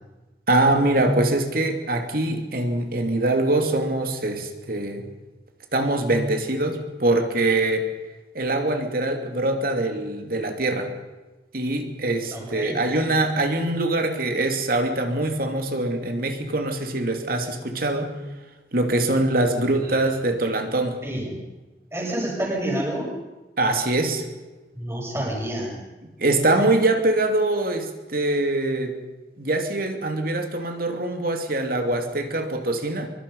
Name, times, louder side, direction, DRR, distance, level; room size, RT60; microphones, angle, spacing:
voice 1, 0.5-5.0 5.7-7.9 8.3-10.9 11.5-18.1 18.7-21.0 23.6-24.2 26.2-28.9 29.4-33.1, right 2 dB, 55° right, 5 dB, 2.7 m, -23 dB
voice 2, 12.3-12.8 19.6-19.7 21.0-21.4 21.9-23.1 24.7-25.8, right 1 dB, 15° right, -2 dB, 7.4 m, -28 dB
24.0 x 23.5 x 5.5 m, 1.2 s
head